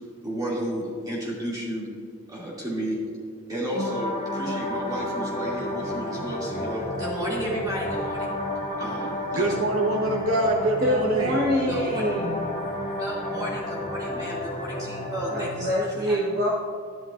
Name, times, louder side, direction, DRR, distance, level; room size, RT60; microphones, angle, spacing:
voice 1, 0.2-1.9 2.3-3.0 3.5-8.3 8.8-9.5 11.6-12.0 13.0-16.2, equal, 15° right, -6 dB, 2.4 m, -32 dB
sound 1, 3.7-15.7, left 1 dB, 30° left, 1.1 m, -31 dB
voice 2, 9.3-11.5, right 1 dB, 75° right, 1 dB, 1.0 m, -24 dB
voice 3, 10.8-12.4 15.3-16.5, equal, 45° right, -5 dB, 1.1 m, -25 dB
11.5 x 11.0 x 2.5 m, 2.2 s
head